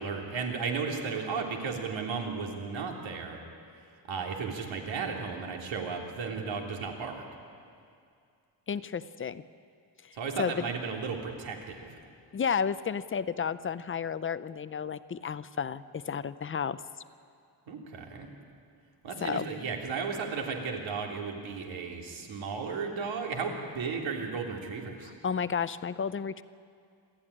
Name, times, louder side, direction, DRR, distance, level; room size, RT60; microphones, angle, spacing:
voice 1, 0.0-3.4 4.1-7.2 10.1-11.9 17.7-18.3 19.0-25.1, right 5 dB, 85° right, 1 dB, 3.4 m, -34 dB
voice 2, 8.7-9.4 10.0-10.1 10.4-10.7 12.3-16.8 19.2-19.5 25.2-26.4, left 6 dB, 30° left, 14 dB, 0.5 m, -32 dB
27.0 x 13.5 x 10.0 m, 2.3 s
wide cardioid pair, 170°, 45 cm